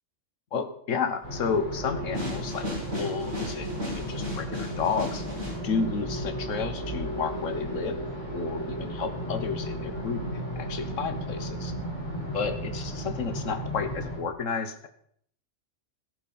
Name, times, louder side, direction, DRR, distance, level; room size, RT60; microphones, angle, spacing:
voice 1, 0.5-5.2 5.5-8.0 8.3-10.2 10.5-11.7 12.3-14.9, left 5 dB, 90° left, 9 dB, 1.4 m, -31 dB
sound 1, 1.2-14.2, right 1 dB, 40° left, 5.9 m, -34 dB
sound 2, 2.1-5.6, left 1 dB, 60° right, 6.3 m, -35 dB
14.0 x 11.5 x 4.2 m, 0.64 s
omnidirectional pair, 1.3 m